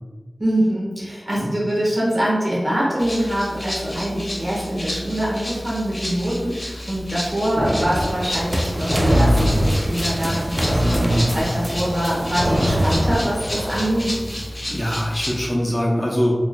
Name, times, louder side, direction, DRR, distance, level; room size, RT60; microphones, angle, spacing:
voice 1, 0.4-14.1, right 1 dB, 50° right, -5 dB, 1.4 m, -24 dB
Rattle (instrument), 3.0-15.5, left 1 dB, 40° left, 1.0 m, -31 dB
sound 1, 7.6-14.0, equal, 75° right, 1.2 m, -22 dB
sound 2, 8.1-14.5, equal, 10° right, 0.5 m, -32 dB
voice 2, 11.0-11.3 14.7-16.3, equal, 15° left, -4 dB, 0.8 m, -22 dB
4.1 x 3.2 x 2.3 m, 1.3 s
wide cardioid pair, 55°, 0 cm